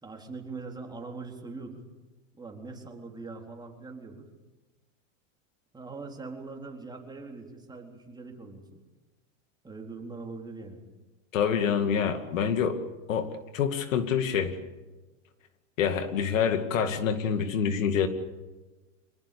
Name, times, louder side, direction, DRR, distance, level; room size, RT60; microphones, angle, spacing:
voice 1, 0.0-1.8 2.4-4.3 5.7-8.8 9.6-10.9, right 3 dB, 10° right, 1 dB, 3.9 m, -42 dB
voice 2, 11.3-12.8 13.1-14.6 15.8-18.1, left 7 dB, 90° left, 8 dB, 2.4 m, -26 dB
25.5 x 19.5 x 8.5 m, 1.2 s
supercardioid pair, 130°, 38 cm